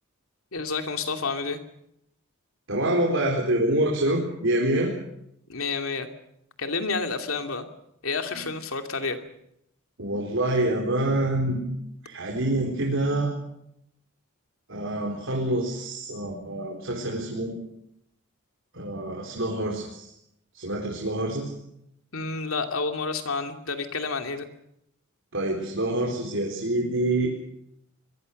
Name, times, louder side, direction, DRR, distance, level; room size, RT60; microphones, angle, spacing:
voice 1, 0.5-1.6 5.5-6.1 6.6-7.7 8.0-9.2 22.1-24.5, left 4 dB, 80° left, 5 dB, 2.7 m, -29 dB
voice 2, 2.7-4.9 10.0-11.6 12.0-13.3 14.7-17.6 18.7-20.1 20.5-21.5 25.3-27.3, right 1 dB, 65° right, -1 dB, 4.4 m, -26 dB
26.0 x 22.5 x 6.6 m, 0.78 s
head